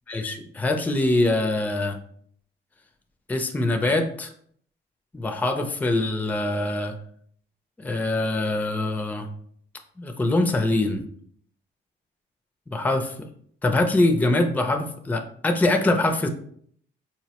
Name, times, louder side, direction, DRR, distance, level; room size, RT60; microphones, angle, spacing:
voice 1, 0.1-2.0 3.3-4.3 5.1-6.9 7.8-9.3 10.0-11.0 12.7-13.1 13.6-16.3, left 2 dB, 10° left, 5 dB, 0.4 m, -23 dB
4.3 x 2.0 x 2.8 m, 0.62 s
cardioid pair, 90°, 20 cm